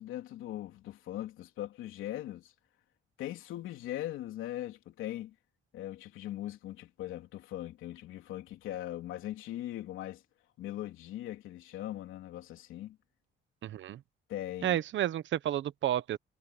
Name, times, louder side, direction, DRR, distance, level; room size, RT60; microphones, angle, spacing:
voice 1, 0.0-2.5 3.2-5.3 5.7-10.2 10.6-13.0 14.3-14.8, left 13 dB, 90° left, 3.5 m, -40 dB
voice 2, 13.6-14.0 14.6-16.2, right 12 dB, 70° right, 1.1 m, -31 dB
cardioid pair, 90°, 20 cm